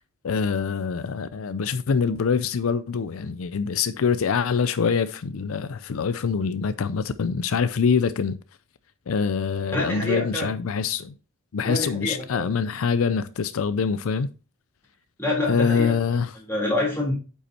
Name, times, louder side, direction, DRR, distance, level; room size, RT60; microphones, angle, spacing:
voice 1, 0.2-8.4 9.1-11.1 11.5-14.3 15.5-16.3, left 5 dB, 75° left, 0.4 m, -24 dB
voice 2, 9.7-10.5 11.7-12.5 15.2-15.9 16.4-17.2, left 2 dB, 10° left, 3.4 m, -26 dB
8.5 x 5.6 x 4.2 m
head